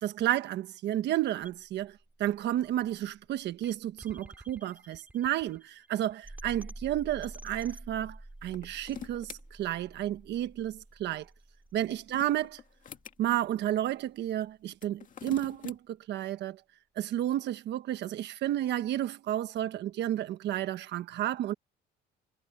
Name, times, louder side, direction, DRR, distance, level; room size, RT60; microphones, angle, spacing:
voice 1, 0.0-11.3 11.7-12.5 13.2-16.6 17.0-21.5, right 12 dB, 65° right, 1.2 m, -31 dB
sound 1, 1.4-13.4, right 1 dB, 10° right, 3.5 m, -49 dB
sound 2, 8.4-9.4 11.7-13.2 14.7-15.8, left 8 dB, 45° left, 2.1 m, -45 dB
cardioid pair, 120°, 19 cm